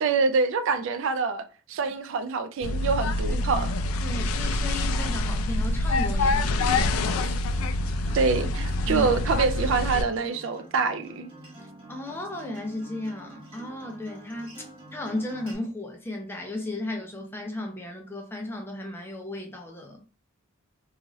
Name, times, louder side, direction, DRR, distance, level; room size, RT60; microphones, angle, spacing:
voice 1, 0.0-3.7 8.1-11.3, right 4 dB, 65° right, 0.3 m, -25 dB
sound 1, 2.6-10.0, left 2 dB, 80° left, 0.3 m, -26 dB
voice 2, 3.3-3.7 4.0-7.2 8.9-9.1 11.9-20.0, left 1 dB, 10° left, 0.4 m, -35 dB
Acoustic guitar, 7.6-15.5, right 1 dB, 25° right, 1.1 m, -47 dB
2.6 x 2.4 x 3.0 m
head